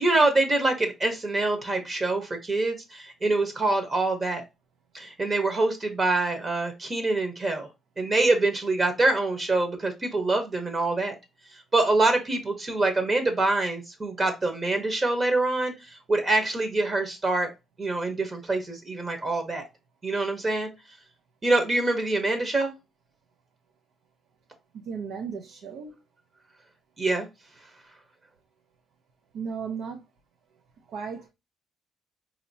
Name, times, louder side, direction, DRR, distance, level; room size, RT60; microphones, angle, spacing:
voice 1, 0.0-4.4 4.9-7.7 8.0-11.1 11.7-17.5 17.8-19.6 20.0-20.7 21.4-22.7 27.0-27.3, right 2 dB, 35° right, 1.1 m, -25 dB
voice 2, 24.8-25.9 29.3-30.1 30.9-31.3, right 6 dB, 80° right, 0.6 m, -35 dB
4.1 x 2.9 x 2.6 m
cardioid pair, 90°, 0 cm